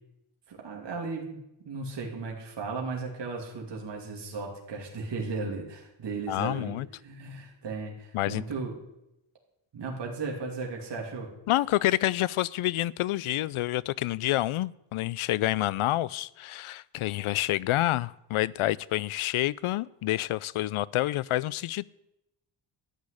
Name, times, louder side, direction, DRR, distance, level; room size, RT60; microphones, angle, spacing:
voice 1, 0.5-1.4 1.6-6.7 7.0-8.7 9.7-11.3, right 4 dB, 60° right, 2.8 m, -35 dB
voice 2, 6.3-6.9 8.1-8.4 11.5-21.9, left 16 dB, 80° left, 0.6 m, -28 dB
13.5 x 6.4 x 10.0 m
wide cardioid pair, 140°, 49 cm